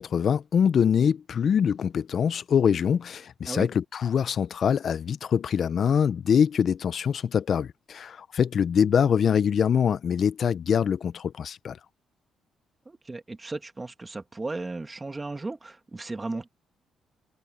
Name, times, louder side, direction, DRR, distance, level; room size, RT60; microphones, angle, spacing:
voice 1, 0.0-11.8, left 7 dB, 55° left, 0.7 m, -24 dB
voice 2, 12.9-16.5, right 3 dB, 20° right, 2.6 m, -35 dB
cardioid pair, 90°, 0 cm